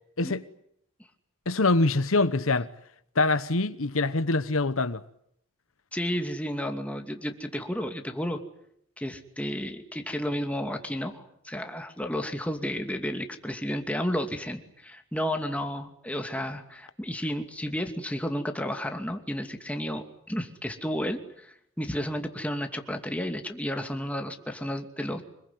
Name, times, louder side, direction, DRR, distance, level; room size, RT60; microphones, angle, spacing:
voice 1, 1.5-2.7 3.1-5.0, left 3 dB, 85° left, 1.1 m, -24 dB
voice 2, 5.9-8.4 9.0-25.2, equal, 5° left, 2.5 m, -32 dB
26.0 x 22.0 x 9.6 m
head